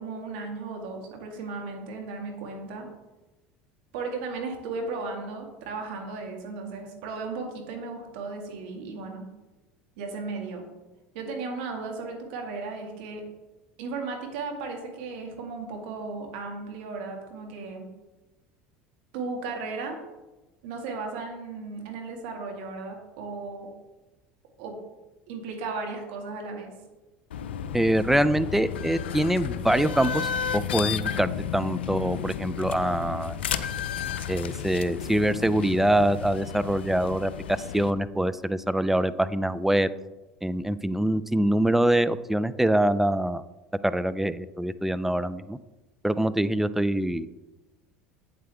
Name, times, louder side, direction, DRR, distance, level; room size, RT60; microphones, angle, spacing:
voice 1, 0.0-2.9 3.9-9.3 10.0-10.6 11.1-13.2 13.8-17.8 19.1-20.0 20.6-23.7 24.6-24.8 25.3-26.7, right 4 dB, 70° right, 2 dB, 2.1 m, -35 dB
sound 1, 27.3-37.9, left 8 dB, 85° left, 0.5 m, -33 dB
voice 2, 27.7-33.4 34.3-39.9 40.4-43.4 43.8-45.6 46.0-47.3, right 1 dB, 5° right, 14 dB, 0.4 m, -24 dB
8.8 x 7.7 x 3.5 m, 1.1 s
hypercardioid pair, 80°, 6 cm